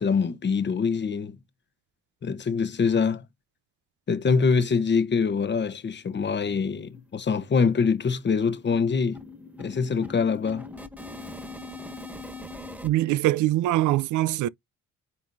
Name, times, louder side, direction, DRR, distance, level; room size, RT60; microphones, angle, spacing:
voice 1, 0.0-1.4 2.2-3.2 4.1-9.2 9.6-10.7, left 5 dB, 35° left, 1.0 m, -24 dB
sound 1, 5.6-5.7 6.1-6.2 6.5-6.7 6.9-12.9, left 2 dB, 5° right, 1.5 m, -42 dB
voice 2, 12.8-14.5, right 15 dB, 80° right, 0.5 m, -23 dB
9.6 x 3.7 x 2.6 m
cardioid pair, 90°, 30 cm